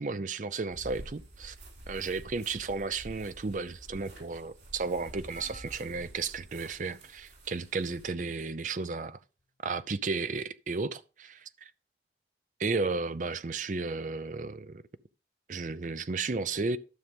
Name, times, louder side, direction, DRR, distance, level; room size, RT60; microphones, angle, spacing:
voice 1, 0.0-1.6 1.9-9.2 9.6-11.7 12.6-14.8 15.5-16.8, right 4 dB, 45° right, 0.5 m, -33 dB
sound 1, 0.7-8.1, right 1 dB, 90° right, 4.0 m, -49 dB
sound 2, 5.3-7.1 7.8-8.1 9.4-9.5, left 1 dB, 45° left, 1.1 m, -54 dB
12.5 x 6.5 x 3.6 m
head